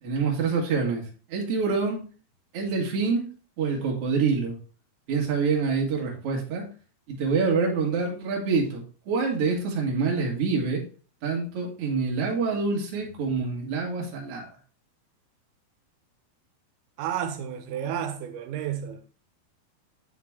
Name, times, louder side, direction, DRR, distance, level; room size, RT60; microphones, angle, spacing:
voice 1, 0.0-2.0 2.5-3.3 3.6-4.6 5.1-6.6 7.1-10.8 11.2-14.5, right 4 dB, 50° right, 2.1 m, -26 dB
voice 2, 17.0-19.0, right 9 dB, 85° right, 2.8 m, -31 dB
9.2 x 3.9 x 3.6 m
omnidirectional pair, 4.4 m